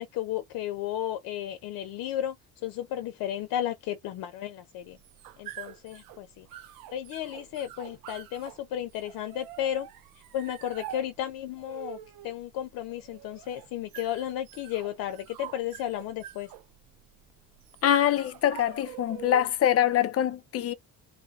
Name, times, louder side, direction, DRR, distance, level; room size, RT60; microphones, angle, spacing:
voice 1, 0.0-2.4 2.6-5.0 5.4-6.5 6.9-9.9 10.3-12.0 12.2-16.5, left 11 dB, 80° left, 0.7 m, -33 dB
sound 1, 4.8-19.7, right 13 dB, 80° right, 0.6 m, -46 dB
voice 2, 17.8-20.7, left 10 dB, 45° left, 0.6 m, -24 dB
3.2 x 2.1 x 4.0 m
cardioid pair, 120°, 34 cm